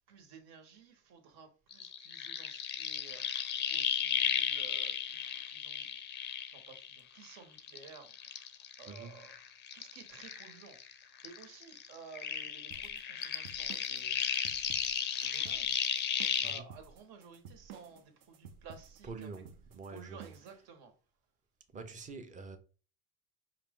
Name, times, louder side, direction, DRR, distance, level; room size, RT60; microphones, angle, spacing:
voice 1, 0.1-5.9 6.5-8.5 8.8-10.8 11.2-14.3 15.2-15.8 16.4-19.3 19.9-20.9, right 5 dB, 70° right, 1.3 m, -54 dB
sound 1, 1.7-7.2 7.6-10.9 11.2-16.6, left 9 dB, 30° left, 0.4 m, -35 dB
voice 2, 8.9-9.2 16.4-16.7 19.0-20.3 21.7-22.6, right 4 dB, 20° right, 0.5 m, -46 dB
sound 2, 12.7-20.6, right 7 dB, 55° right, 0.8 m, -53 dB
5.6 x 2.5 x 3.6 m
cardioid pair, 155°, 38 cm